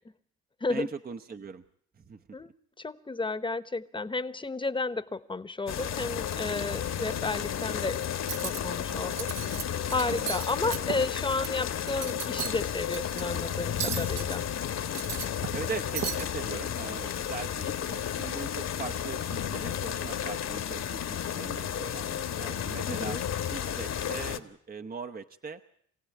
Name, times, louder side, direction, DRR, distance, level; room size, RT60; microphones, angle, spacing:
voice 1, 0.7-1.6 2.0-2.2 10.0-10.3 10.7-10.9 15.5-23.2 23.5-25.6, right 5 dB, 30° right, 7 dB, 0.9 m, -40 dB
voice 2, 2.8-8.0 8.4-9.3 9.9-14.4 22.9-23.2, left 3 dB, 15° left, 13 dB, 1.1 m, -32 dB
sound 1, 5.7-24.4, left 9 dB, 60° left, 1.5 m, -33 dB
Cutlery silverware, 8.2-8.6 9.0-9.6 9.9-11.5 11.8-12.6 12.9-13.2 13.8-14.4 14.8-15.7 16.0-16.2, right 8 dB, 60° right, 1.1 m, -35 dB
24.5 x 16.5 x 9.5 m, 0.67 s
cardioid pair, 90°, 30 cm